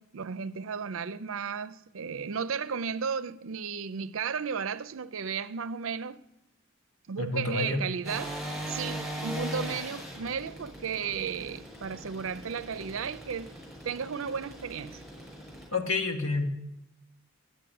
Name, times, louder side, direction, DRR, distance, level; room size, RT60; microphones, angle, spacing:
voice 1, 0.0-6.2 7.1-8.4 8.7-13.6 13.8-15.0, right 6 dB, 75° right, 0.5 m, -34 dB
voice 2, 7.2-7.8 15.7-16.5, left 3 dB, 85° left, 2.0 m, -29 dB
sound 1, 8.0-15.6, equal, ahead, 6.3 m, -39 dB
10.0 x 9.3 x 9.3 m
head